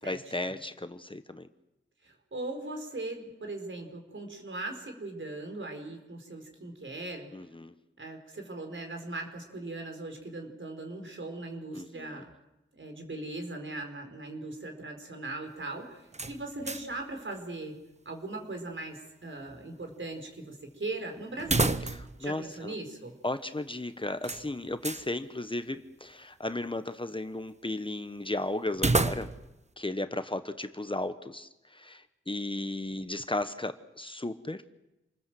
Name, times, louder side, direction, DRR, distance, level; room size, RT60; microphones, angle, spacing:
voice 1, 0.0-1.5 7.3-7.7 11.7-12.2 21.4-21.6 21.9-22.7 23.2-29.3 29.8-34.6, left 2 dB, 25° left, 10 dB, 1.2 m, -35 dB
voice 2, 2.0-7.3 8.0-12.3 12.7-17.8 18.0-21.8 22.2-23.1, right 2 dB, 65° right, 4 dB, 5.0 m, -39 dB
sound 1, 16.1-17.0 17.3-17.4 21.4-22.2 22.5-22.6 24.2-25.1 28.7-29.6, right 3 dB, 30° right, 1.0 m, -30 dB
28.0 x 20.5 x 7.7 m, 0.94 s
wide cardioid pair, 60°, 21 cm